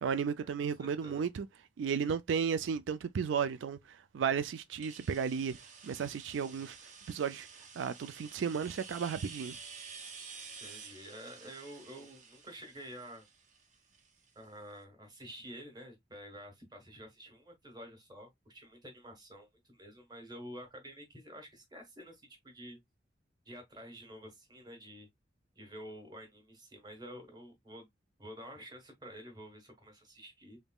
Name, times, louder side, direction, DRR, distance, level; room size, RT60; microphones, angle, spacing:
voice 1, 0.0-1.5 1.8-5.6 5.8-6.8 7.1-7.5 7.8-9.6, right 6 dB, 85° right, 0.4 m, -34 dB
voice 2, 0.8-1.3 10.6-13.3 14.3-22.8 23.4-25.1 25.5-27.9 28.2-30.6, equal, 20° right, 1.3 m, -49 dB
sound 1, 4.8-14.4, right 5 dB, 40° right, 0.8 m, -51 dB
3.9 x 3.6 x 2.3 m
head